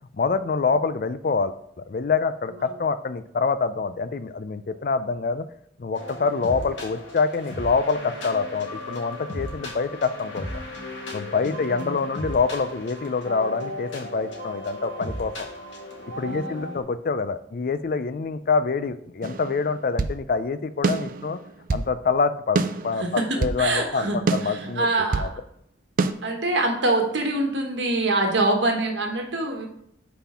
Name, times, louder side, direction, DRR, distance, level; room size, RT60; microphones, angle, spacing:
voice 1, 0.1-5.5 5.8-10.6 11.1-15.5 16.2-21.4 21.7-24.9 25.1-25.3, left 4 dB, 50° left, 12 dB, 0.4 m, -26 dB
sound 1, 5.9-16.8, left 1 dB, 85° left, 1.7 m, -36 dB
voice 2, 11.4-11.9 16.2-16.7 23.0-25.3 26.2-29.7, right 2 dB, 75° right, 3 dB, 1.2 m, -25 dB
sound 2, 19.2-20.2 20.8-21.9 22.5-23.6 24.3-25.3 26.0-26.1, right 3 dB, 45° right, 0.4 m, -26 dB
5.7 x 4.3 x 5.5 m, 0.70 s
head